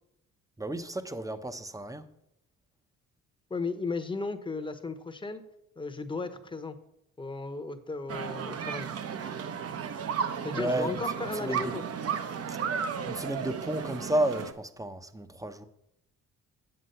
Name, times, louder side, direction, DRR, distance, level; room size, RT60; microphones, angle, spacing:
voice 1, 0.6-2.1 10.5-11.0 11.3-11.8 12.5-12.6 13.1-15.6, right 1 dB, 10° right, 0.7 m, -32 dB
voice 2, 3.5-5.4 5.8-6.8 7.2-8.9 10.4-11.8, left 3 dB, 15° left, 0.9 m, -35 dB
sound 1, 8.1-14.5, right 7 dB, 55° right, 0.8 m, -34 dB
7.9 x 7.4 x 5.5 m
cardioid pair, 90°, 30 cm